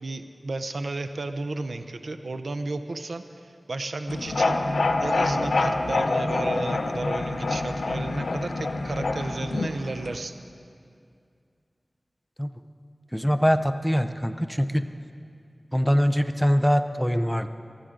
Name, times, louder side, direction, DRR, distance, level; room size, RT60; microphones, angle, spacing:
voice 1, 0.0-4.6 5.0-10.3, right 2 dB, 80° right, 9 dB, 0.6 m, -33 dB
sound 1, 4.1-10.2, left 2 dB, 90° left, 0.6 m, -26 dB
voice 2, 13.1-14.8 15.7-17.5, equal, ahead, 8 dB, 0.6 m, -23 dB
19.0 x 14.0 x 3.8 m, 2.4 s
wide cardioid pair, 70°, 0 cm